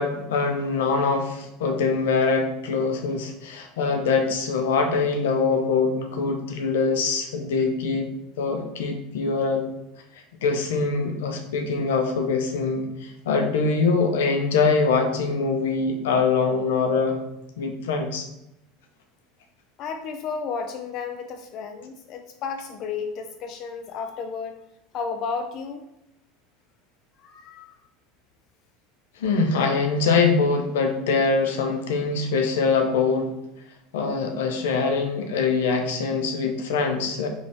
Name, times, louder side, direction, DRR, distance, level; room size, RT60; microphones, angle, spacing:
voice 1, 0.0-8.1 8.4-9.7 10.4-17.2 17.6-18.3 29.2-33.3 33.9-37.3, left 4 dB, 90° left, 5 dB, 0.6 m, -23 dB
voice 2, 19.8-24.6 24.9-25.8 27.2-27.7, left 5 dB, 50° left, 6 dB, 0.3 m, -32 dB
4.5 x 3.2 x 2.8 m, 0.88 s
supercardioid pair, 115°, 0 cm